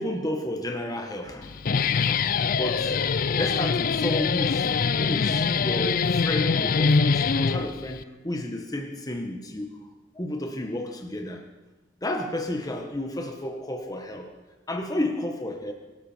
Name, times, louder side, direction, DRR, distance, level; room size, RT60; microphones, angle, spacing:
voice 1, 0.0-1.6 2.6-2.9 3.4-4.7 4.9-9.8 10.1-11.4 12.0-14.3 14.7-15.7, left 1 dB, 20° left, 4 dB, 1.5 m, -31 dB
Guitar, 1.4-8.0, left 5 dB, 50° left, 0.4 m, -24 dB
23.0 x 12.0 x 4.6 m, 1.2 s
head